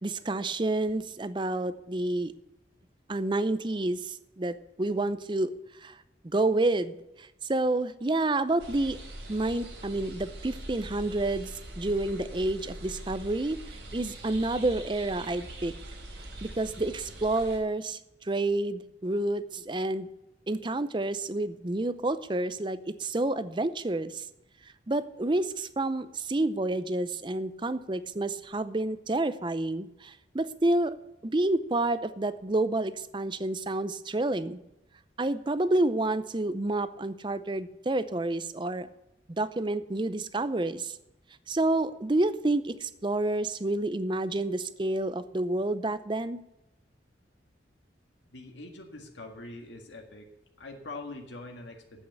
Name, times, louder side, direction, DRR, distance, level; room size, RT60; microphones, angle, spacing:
voice 1, 0.0-2.3 3.1-5.5 5.8-6.0 6.2-9.0 9.3-11.5 11.8-13.6 13.9-15.7 16.4-20.1 20.5-24.2 24.9-31.0 31.2-34.6 35.2-38.9 39.4-41.0 41.5-46.4, right 2 dB, 25° right, 13 dB, 0.6 m, -29 dB
sound 1, 8.6-17.6, right 1 dB, 85° right, 3.7 m, -43 dB
voice 2, 48.3-50.3 50.6-52.0, left 2 dB, 85° left, 2 dB, 1.9 m, -43 dB
8.5 x 8.5 x 9.0 m, 0.92 s
head